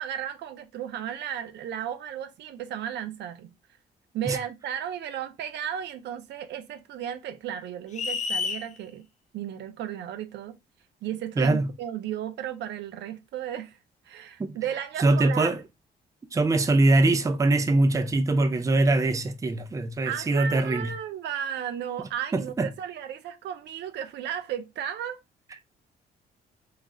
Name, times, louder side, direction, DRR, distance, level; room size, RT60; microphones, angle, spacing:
voice 1, 0.0-3.5 4.1-9.1 9.3-10.5 11.0-13.8 14.1-15.6 20.0-25.2, right 10 dB, 75° right, 0.4 m, -34 dB
sound 1, 7.9-8.7, left 5 dB, 40° left, 0.5 m, -29 dB
voice 2, 11.4-11.7 14.4-14.6 15.0-15.6 16.3-20.9 22.3-22.7, right 2 dB, 20° right, 0.4 m, -22 dB
2.4 x 2.0 x 3.6 m
cardioid pair, 95°, 18 cm